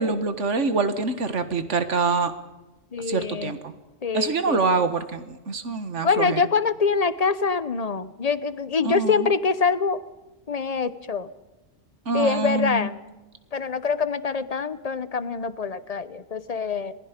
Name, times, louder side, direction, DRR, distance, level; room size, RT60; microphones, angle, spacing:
voice 1, 0.0-2.3 3.1-3.7 4.1-6.4 8.8-9.3 12.1-12.9, right 4 dB, 70° right, 10 dB, 1.8 m, -25 dB
voice 2, 2.9-3.6 4.0-4.7 6.0-10.0 10.5-11.3 12.1-13.0 13.5-16.9, left 5 dB, 35° left, 14 dB, 0.8 m, -25 dB
26.5 x 20.5 x 5.2 m, 1.1 s
omnidirectional pair, 1.3 m